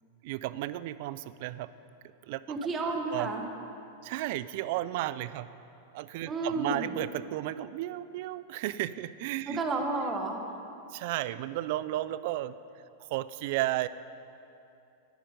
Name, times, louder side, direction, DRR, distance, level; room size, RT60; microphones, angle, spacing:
voice 1, 0.2-1.7 2.3-2.4 3.1-3.3 4.0-5.5 5.9-9.6 10.9-12.6 13.0-13.9, right 15 dB, 60° right, 16 dB, 0.4 m, -33 dB
voice 2, 2.5-3.4 6.3-6.9 9.5-10.4, right 3 dB, 25° right, 3 dB, 1.3 m, -31 dB
10.0 x 9.5 x 5.1 m, 2.7 s
hypercardioid pair, 120°, 0 cm